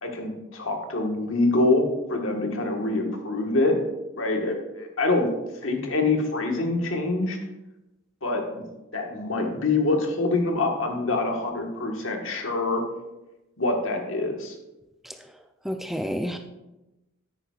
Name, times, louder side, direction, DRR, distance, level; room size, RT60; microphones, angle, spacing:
voice 1, 0.0-3.8 4.2-5.3 5.6-7.4 8.2-8.7 8.9-12.8 13.6-14.5, left 2 dB, 70° left, 2 dB, 1.4 m, -25 dB
voice 2, 15.6-16.4, equal, ahead, 5 dB, 0.3 m, -29 dB
10.5 x 8.9 x 2.4 m, 0.99 s
head